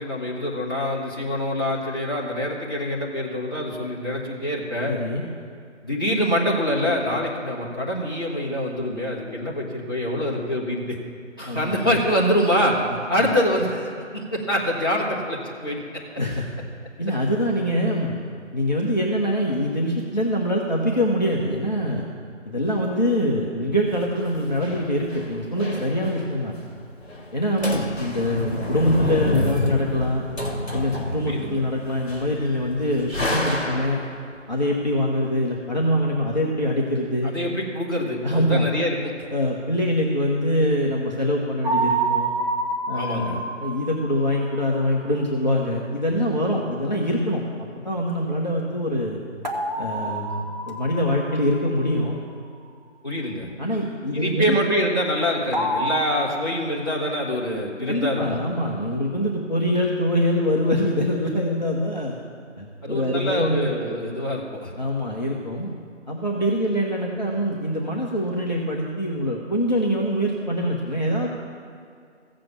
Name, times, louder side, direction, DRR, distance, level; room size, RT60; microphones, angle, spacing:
voice 1, 0.0-4.9 5.8-11.0 11.4-12.8 13.1-15.8 31.3-31.6 37.3-39.1 42.9-43.4 53.0-53.5 54.1-58.4 62.8-64.7, equal, 20° left, -8 dB, 1.5 m, -25 dB
voice 2, 4.9-5.2 11.5-11.8 16.2-16.5 17.0-18.2 18.5-22.0 22.4-26.5 27.3-30.2 30.7-34.0 34.5-37.3 38.2-38.7 39.3-42.3 42.9-47.4 47.8-49.2 49.8-52.2 53.6-54.5 57.9-62.1 62.6-63.7 64.8-65.7 66.1-71.3, equal, 35° left, -3 dB, 1.1 m, -24 dB
sound 1, 23.9-26.4 26.7-26.8 27.0-27.3 27.6-34.2, left 2 dB, 60° left, 2.1 m, -28 dB
sound 2, 41.6-44.6 49.4-51.6 55.5-56.0, right 2 dB, 35° right, 1.1 m, -27 dB
15.0 x 7.6 x 7.2 m, 2.3 s
figure-of-eight pair, 165°, 37 cm